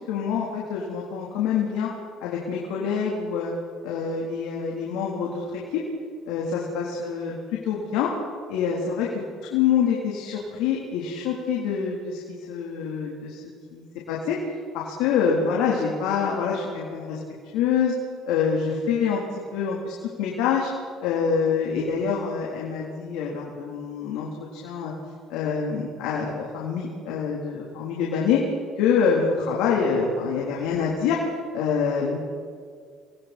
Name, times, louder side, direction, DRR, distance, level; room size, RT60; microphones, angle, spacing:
voice 1, 0.1-1.9 2.2-3.5 3.8-5.4 5.7-5.8 6.3-7.4 7.6-8.1 8.5-9.1 9.5-13.4 13.7-14.4 14.7-17.2 17.5-17.9 18.3-19.2 19.5-20.7 21.0-24.3 24.5-24.9 25.3-28.5 28.8-31.2 31.5-32.2, left 6 dB, 85° left, -3 dB, 3.8 m, -26 dB
27.5 x 21.5 x 4.5 m, 2.1 s
supercardioid pair, 95°, 0 cm